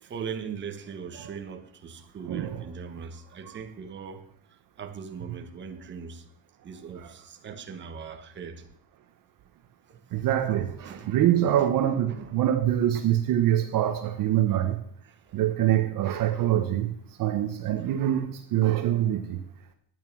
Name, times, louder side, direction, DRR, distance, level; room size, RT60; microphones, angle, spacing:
voice 1, 0.0-4.3 4.8-6.2 6.6-8.6 9.9-11.6 11.8-12.3 15.3-15.4, right 6 dB, 25° right, 1.3 m, -40 dB
voice 2, 2.3-2.6 7.0-7.1 10.1-14.8 15.3-16.9 17.2-19.4, right 11 dB, 50° right, 1.0 m, -25 dB
12.0 x 9.2 x 6.1 m
cardioid pair, 170°, 43 cm